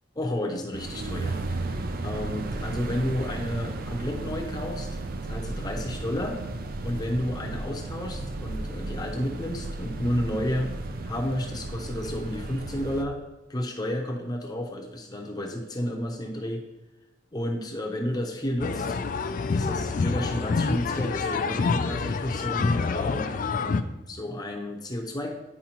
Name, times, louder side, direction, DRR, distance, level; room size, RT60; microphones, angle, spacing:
voice 1, 0.1-4.9 5.2-6.4 6.8-10.7 11.0-13.2 13.5-16.6 17.3-19.0 19.5-23.3 24.1-25.3, left 1 dB, 20° left, 2 dB, 0.7 m, -31 dB
sound 1, 0.7-13.0, right 2 dB, 45° right, 0.4 m, -34 dB
sound 2, 18.6-23.8, left 4 dB, 40° left, 0.3 m, -27 dB
10.0 x 4.8 x 2.9 m, 0.96 s
head